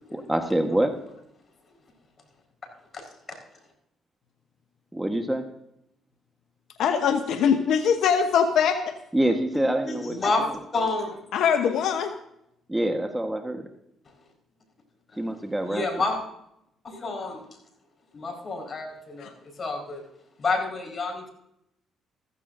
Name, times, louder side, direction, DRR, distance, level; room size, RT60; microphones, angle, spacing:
voice 1, 0.1-0.9 4.9-5.4 9.1-10.5 12.7-13.7 15.2-15.8, right 1 dB, 10° right, 5 dB, 1.3 m, -26 dB
voice 2, 6.8-8.9 11.3-12.1 19.2-19.3, left 7 dB, 75° left, 7 dB, 0.9 m, -22 dB
voice 3, 9.5-11.2 11.6-11.8 15.1-15.2 15.6-16.2 16.8-17.4 18.1-19.3 19.6-20.0 20.4-21.3, left 3 dB, 40° left, 2 dB, 4.8 m, -29 dB
15.0 x 14.5 x 2.7 m, 0.79 s
cardioid pair, 80°, 0 cm